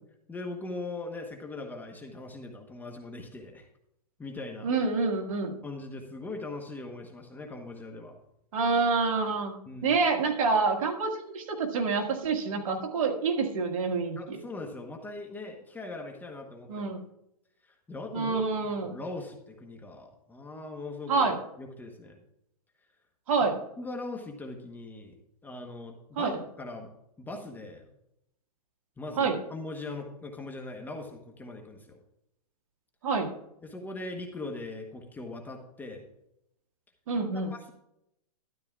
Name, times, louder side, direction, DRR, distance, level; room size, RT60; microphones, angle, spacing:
voice 1, 0.3-3.7 4.2-4.7 5.6-8.2 9.7-10.0 14.1-16.9 17.6-22.2 23.8-25.2 25.4-26.9 27.2-27.9 29.0-32.0 33.6-36.1 37.2-37.7, left 2 dB, 10° left, 2 dB, 1.0 m, -40 dB
voice 2, 4.6-5.6 8.5-9.6 9.8-14.4 16.7-17.0 18.1-18.9 21.1-21.4 23.3-23.6 26.2-26.3 29.2-29.4 33.0-33.3 37.1-37.5, right 4 dB, 60° right, 3 dB, 1.8 m, -27 dB
12.5 x 10.5 x 2.4 m, 0.81 s
hypercardioid pair, 130°, 20 cm